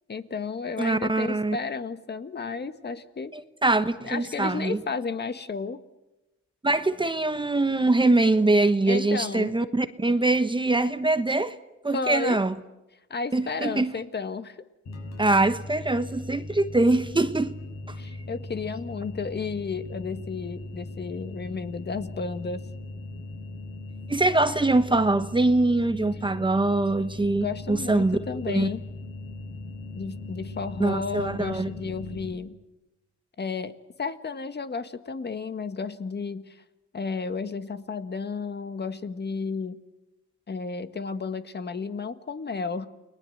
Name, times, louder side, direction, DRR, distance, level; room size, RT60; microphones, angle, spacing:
voice 1, 0.1-3.3 4.0-5.8 8.9-9.6 11.9-12.4 13.1-14.6 18.0-22.6 27.4-28.8 29.9-32.6 33.4-36.6 36.9-39.8 40.5-42.9, left 4 dB, 35° left, 1.6 m, -32 dB
voice 2, 0.8-1.6 3.3-4.8 6.6-11.5 11.8-12.5 13.3-13.9 15.2-17.6 24.1-28.2 28.5-28.7 30.8-31.7, right 2 dB, 15° right, 1.1 m, -23 dB
sound 1, 14.9-32.3, left 2 dB, 60° left, 6.9 m, -39 dB
29.5 x 20.5 x 7.9 m
cardioid pair, 90°, 30 cm